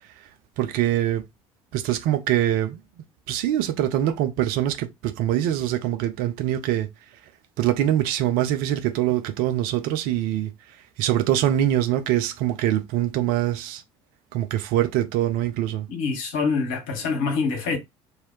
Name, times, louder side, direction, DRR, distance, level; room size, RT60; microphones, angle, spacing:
voice 1, 0.6-1.2 1.7-2.8 3.3-6.9 7.6-10.5 11.0-13.8 14.3-15.9, right 12 dB, 60° right, 0.7 m, -23 dB
voice 2, 15.9-17.8, left 4 dB, 60° left, 1.6 m, -25 dB
3.3 x 2.8 x 4.5 m
figure-of-eight pair, 60°, 16 cm